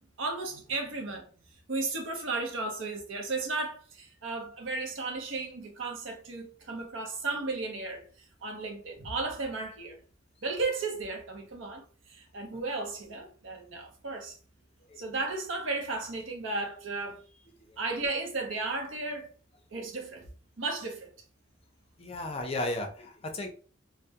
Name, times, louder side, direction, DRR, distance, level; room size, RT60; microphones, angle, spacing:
voice 1, 0.2-1.3 1.7-8.0 8.4-10.0 10.4-14.4 15.0-17.2 17.8-19.3 19.7-20.3 20.6-21.1, right 3 dB, 70° right, 0.7 m, -34 dB
voice 2, 22.0-23.5, left 1 dB, 30° left, 0.5 m, -34 dB
2.2 x 2.1 x 2.7 m
head